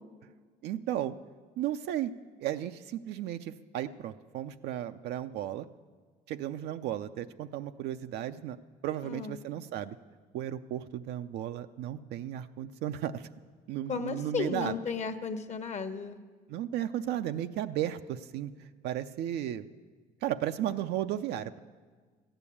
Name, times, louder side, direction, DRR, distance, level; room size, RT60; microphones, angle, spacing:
voice 1, 0.6-1.2 1.6-2.1 2.4-5.7 6.3-8.6 8.8-10.0 10.3-13.3 13.7-14.7 16.5-19.7 20.2-21.6, right 11 dB, 80° right, 8 dB, 0.5 m, -34 dB
voice 2, 9.0-9.4 13.9-16.2, left 5 dB, 40° left, 8 dB, 1.1 m, -34 dB
14.0 x 9.0 x 8.4 m, 1.5 s
cardioid pair, 110°, 17 cm